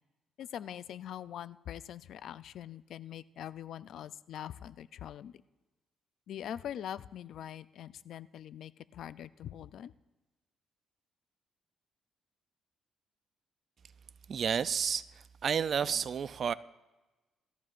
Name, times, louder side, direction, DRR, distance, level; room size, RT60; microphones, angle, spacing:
voice 1, 0.4-5.3 6.3-9.9, left 10 dB, 70° left, 0.4 m, -43 dB
voice 2, 14.3-15.1 15.4-16.5, right 7 dB, 50° right, 0.4 m, -30 dB
19.5 x 13.5 x 2.5 m
cardioid pair, 90°, 0 cm